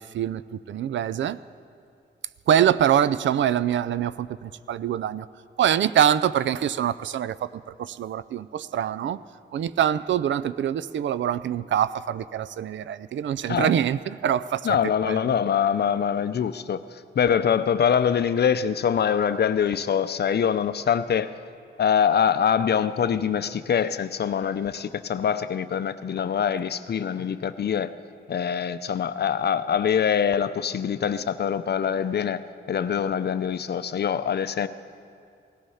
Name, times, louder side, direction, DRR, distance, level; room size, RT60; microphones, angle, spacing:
voice 1, 0.0-1.4 2.5-5.3 5.6-9.2 9.5-14.8 15.0-15.2, right 10 dB, 80° right, 16 dB, 0.4 m, -24 dB
voice 2, 14.6-16.8 17.1-21.3 21.8-27.9 28.3-32.4 32.7-34.7, left 8 dB, 60° left, 12 dB, 0.6 m, -24 dB
18.5 x 14.0 x 5.6 m, 2.4 s
cardioid pair, 90°, 19 cm